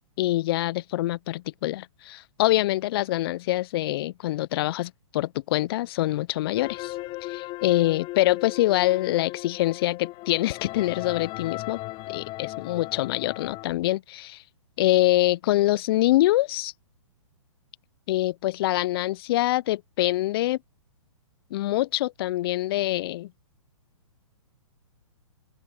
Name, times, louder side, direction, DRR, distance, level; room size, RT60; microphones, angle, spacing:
voice 1, 0.2-6.9 7.2-11.8 12.1-14.4 14.8-16.7 18.1-20.6 21.5-23.3, left 16 dB, 45° left, 0.9 m, -25 dB
sound 1, 6.6-13.6, left 19 dB, 30° left, 1.7 m, -37 dB
open air
figure-of-eight pair, 120°, 17 cm